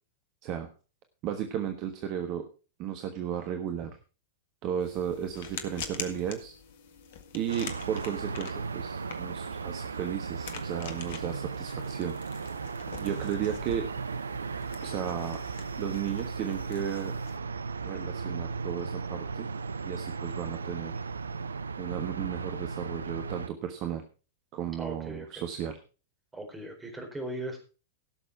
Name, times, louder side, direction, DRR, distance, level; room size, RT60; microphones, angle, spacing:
voice 1, 1.2-2.5 2.8-3.9 4.6-6.5 7.3-12.1 13.0-13.9 14.8-15.4 15.8-17.2 17.8-19.5 19.8-20.9 21.8-24.0 24.5-25.7, right 9 dB, 40° right, 6 dB, 1.3 m, -34 dB
sound 1, 4.8-17.4, left 7 dB, 55° left, 1.7 m, -45 dB
sound 2, 7.5-23.5, right 5 dB, 75° right, 0.5 m, -36 dB
voice 2, 24.8-25.4 26.3-27.6, right 1 dB, 10° right, 3 dB, 4.3 m, -39 dB
16.5 x 6.8 x 4.6 m, 0.35 s
figure-of-eight pair, 95°, 0 cm